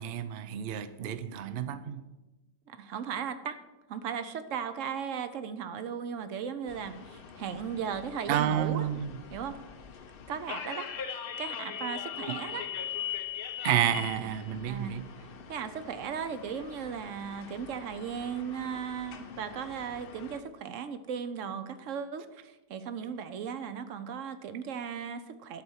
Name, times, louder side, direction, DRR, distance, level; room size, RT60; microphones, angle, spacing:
voice 1, 0.0-2.0 8.3-9.2 12.3-12.4 13.6-15.1, right 10 dB, 90° right, 0.5 m, -30 dB
voice 2, 2.7-3.6 3.9-8.9 9.3-9.6 10.3-10.9 11.4-12.7 14.7-15.0 15.5-25.6, right 7 dB, 60° right, 0.8 m, -36 dB
sound 1, 6.7-20.4, left 8 dB, 55° left, 0.6 m, -42 dB
11.5 x 4.2 x 7.9 m
omnidirectional pair, 1.8 m